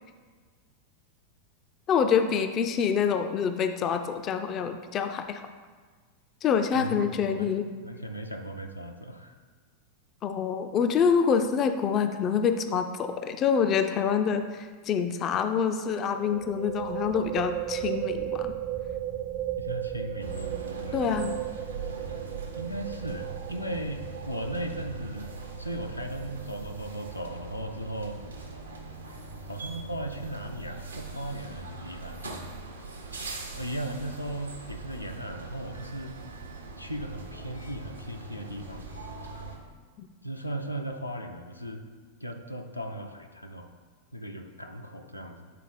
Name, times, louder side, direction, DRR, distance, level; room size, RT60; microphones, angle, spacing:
voice 1, 1.9-5.4 6.4-7.7 10.2-18.5 20.9-21.4 40.0-40.1, left 7 dB, 30° left, 8 dB, 0.4 m, -26 dB
voice 2, 6.7-7.5 7.8-9.3 19.6-20.6 20.8-21.3 22.6-25.3 25.6-28.2 29.5-32.3 33.5-36.2 36.8-38.9 40.2-41.8 42.2-43.7 44.1-45.5, right 1 dB, 90° left, 3 dB, 0.5 m, -37 dB
sound 1, 13.1-13.3 13.6-13.7 16.2-27.5, right 13 dB, 45° right, 0.5 m, -36 dB
sound 2, 20.2-39.6, right 3 dB, 75° right, 0.8 m, -41 dB
7.4 x 4.0 x 4.0 m, 1.5 s
figure-of-eight pair, 90°, 0 cm